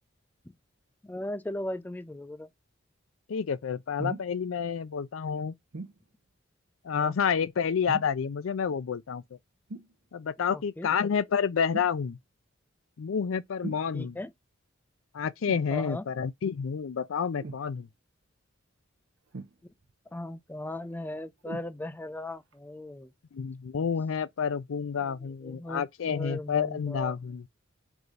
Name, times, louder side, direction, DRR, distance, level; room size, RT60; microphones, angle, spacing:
voice 1, 1.0-2.5 6.9-7.1 10.5-10.9 13.9-14.3 15.7-16.0 20.1-23.1 25.0-27.2, left 1 dB, 10° left, 0.3 m, -38 dB
voice 2, 3.3-5.5 6.8-9.2 10.1-12.2 13.0-14.2 15.1-17.9 23.3-27.4, left 6 dB, 85° left, 0.4 m, -29 dB
sound 1, 4.0-4.3 5.7-6.0 7.9-8.2 9.7-9.9 11.7-12.0 13.6-13.9 15.4-15.7 17.4-17.7 19.3-19.9 21.4-21.7 22.5-22.6, right 3 dB, 75° right, 0.7 m, -39 dB
4.8 x 2.6 x 3.8 m
head